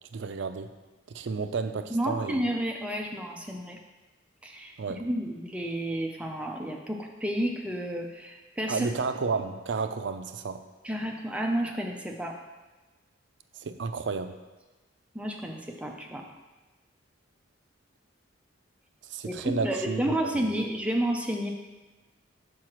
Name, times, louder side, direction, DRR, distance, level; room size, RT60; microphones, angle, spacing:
voice 1, 0.1-0.7 1.1-2.4 4.8-5.0 8.7-10.6 13.5-14.4 19.0-20.4, right 4 dB, 60° right, 9 dB, 0.4 m, -32 dB
voice 2, 1.9-3.8 4.4-8.9 10.8-12.4 15.1-16.2 19.2-21.5, right 1 dB, 5° right, 1 dB, 0.5 m, -31 dB
4.8 x 4.7 x 5.9 m, 1.2 s
head